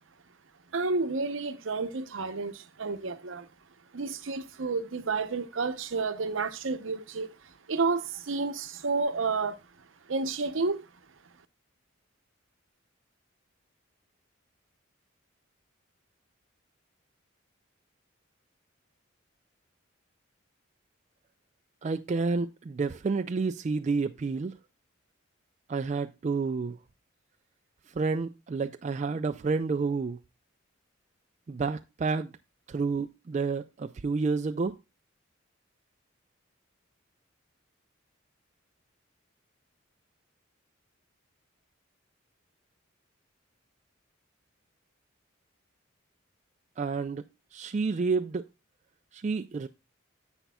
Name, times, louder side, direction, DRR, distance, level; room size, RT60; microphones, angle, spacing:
voice 1, 0.7-3.5 3.9-7.3 7.7-9.6 10.1-10.8, right 4 dB, 70° right, 0.7 m, -30 dB
voice 2, 21.8-24.5 25.7-26.8 27.9-30.2 31.5-32.3 32.7-34.8 46.8-47.2 47.5-48.4 49.1-49.7, right 4 dB, 35° right, 0.3 m, -29 dB
10.0 x 8.0 x 2.2 m
head